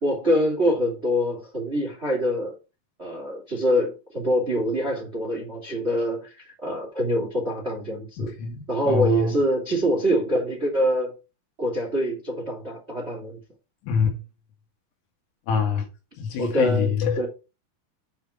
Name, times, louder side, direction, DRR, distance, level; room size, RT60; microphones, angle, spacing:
voice 1, 0.0-2.5 3.0-6.3 6.6-8.3 8.7-11.1 11.6-13.4 16.4-17.3, equal, 20° right, 1.6 m, -25 dB
voice 2, 8.2-9.3 13.8-14.2 15.5-15.9 16.2-17.3, left 6 dB, 85° left, 4.5 m, -25 dB
9.2 x 3.8 x 7.0 m
omnidirectional pair, 5.4 m